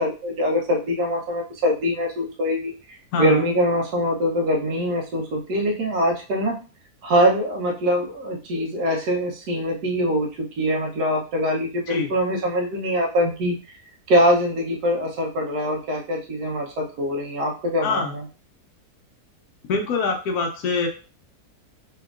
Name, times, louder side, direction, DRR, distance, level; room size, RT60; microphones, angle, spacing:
voice 1, 0.0-2.7 3.2-6.6 7.0-13.6 14.1-18.2, equal, 75° right, 0 dB, 1.4 m, -23 dB
voice 2, 3.1-3.4 11.9-12.1 17.8-18.1 19.7-20.9, left 4 dB, 70° left, 4 dB, 1.1 m, -24 dB
3.4 x 2.9 x 2.4 m, 0.35 s
omnidirectional pair, 1.7 m